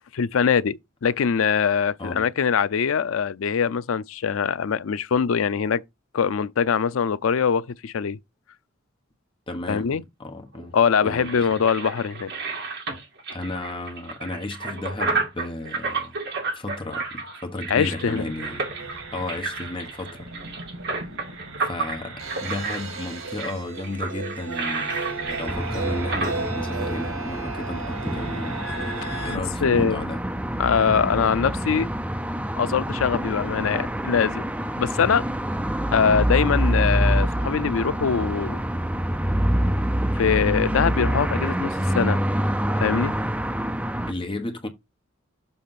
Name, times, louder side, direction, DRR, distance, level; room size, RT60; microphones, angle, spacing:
voice 1, 0.1-5.8 6.1-8.2 9.7-10.0 10.7-12.3 17.7-18.2 29.3-30.0 30.6-31.9 32.6-34.4 34.8-35.3 35.9-38.6 40.1-42.2 42.8-43.1, left 6 dB, 80° left, 0.5 m, -23 dB
voice 2, 9.5-10.8 11.0-11.5 13.3-16.2 16.5-18.7 19.1-20.3 21.6-28.6 29.2-30.2 44.1-44.7, left 2 dB, 25° left, 1.1 m, -33 dB
sound 1, 10.5-26.3, right 3 dB, 60° right, 2.3 m, -31 dB
sound 2, 17.8-29.4, right 3 dB, 85° right, 2.0 m, -35 dB
sound 3, 25.5-44.1, right 1 dB, 5° right, 0.5 m, -26 dB
7.0 x 3.3 x 5.7 m
head